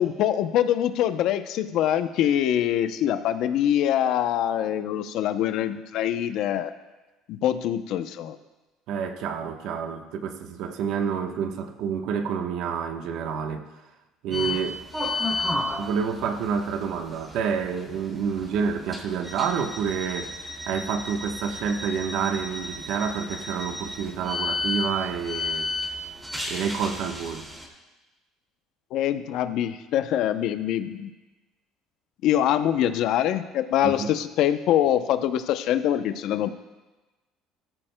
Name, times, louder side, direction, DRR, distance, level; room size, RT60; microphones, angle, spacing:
voice 1, 0.0-6.7 7.3-8.4 28.9-31.1 32.2-36.6, left 11 dB, 65° left, 11 dB, 0.6 m, -24 dB
voice 2, 8.9-13.6 14.2-14.8 15.8-20.3 20.7-25.7 26.5-27.5 33.8-34.1, right 6 dB, 70° right, 5 dB, 1.1 m, -28 dB
sound 1, 14.3-27.7, left 2 dB, 10° right, 2.4 m, -33 dB
14.5 x 13.5 x 2.2 m, 1.1 s
cardioid pair, 105°, 0 cm